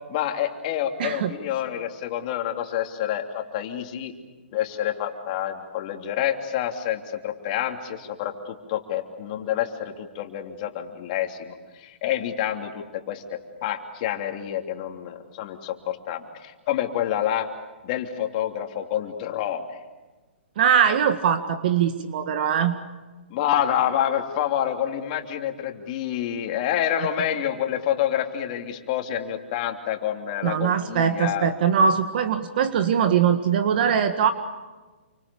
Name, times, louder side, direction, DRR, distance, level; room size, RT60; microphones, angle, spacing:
voice 1, 0.1-4.1 4.5-13.2 13.6-17.5 17.8-19.6 23.3-31.5, left 10 dB, 40° left, 4 dB, 3.2 m, -28 dB
voice 2, 1.0-1.3 20.6-22.8 30.4-34.3, right 7 dB, 50° right, 8 dB, 1.8 m, -21 dB
29.0 x 25.5 x 7.1 m, 1.2 s
hypercardioid pair, 145°, 6 cm